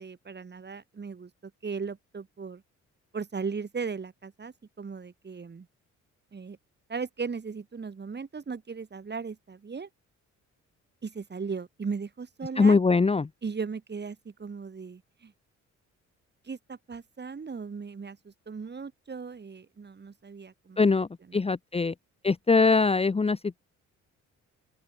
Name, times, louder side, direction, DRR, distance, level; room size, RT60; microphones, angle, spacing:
voice 1, 0.0-2.6 3.1-5.7 6.3-6.6 6.9-9.9 11.0-12.8 13.4-15.3 16.4-20.9 21.2-21.4, right 5 dB, 35° right, 6.7 m, -37 dB
voice 2, 12.6-13.3 20.8-21.9 22.2-23.6, left 4 dB, 20° left, 0.9 m, -22 dB
open air
cardioid pair, 90°, 30 cm